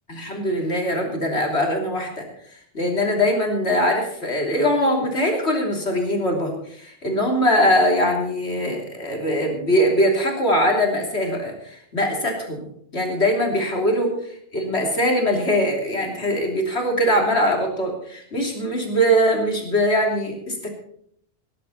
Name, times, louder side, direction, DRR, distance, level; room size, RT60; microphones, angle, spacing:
voice 1, 0.1-2.2 2.7-12.7 12.9-14.1 14.5-20.7, equal, 85° left, 1 dB, 3.5 m, -22 dB
19.5 x 11.0 x 4.2 m, 0.66 s
omnidirectional pair, 1.1 m